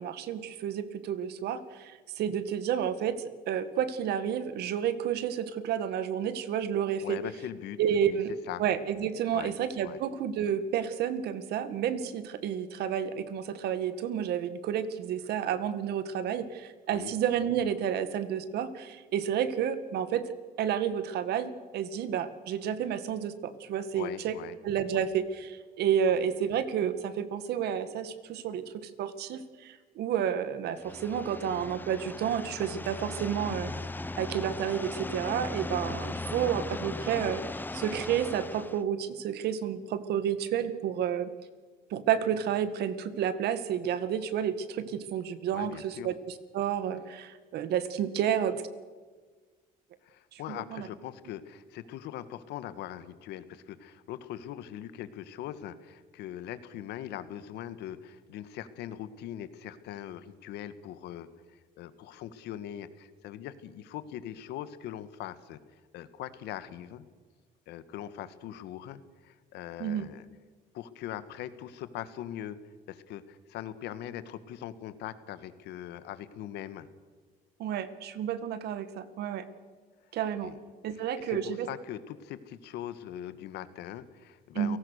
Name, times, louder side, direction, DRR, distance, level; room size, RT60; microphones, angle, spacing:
voice 1, 0.0-7.2 7.8-8.3 8.6-20.2 20.6-24.3 24.6-33.7 34.2-41.3 41.9-48.6 50.3-50.9 69.8-70.1 77.6-79.5 80.1-80.5 80.8-81.7 84.5-84.8, right 9 dB, 75° right, 12 dB, 2.0 m, -30 dB
voice 2, 7.0-7.8 8.0-8.2 8.5-8.6 9.3-9.5 9.8-10.0 16.9-17.1 23.9-24.6 24.9-25.1 26.1-26.2 45.5-46.1 50.0-61.3 61.8-65.6 65.9-67.1 67.7-70.3 70.7-72.6 72.9-76.9 80.4-80.6 80.9-84.8, left 11 dB, 85° left, 13 dB, 1.6 m, -41 dB
sound 1, 30.8-38.8, left 2 dB, 10° left, 0.9 m, -38 dB
30.0 x 18.0 x 6.6 m, 1.4 s
cardioid pair, 110°, 17 cm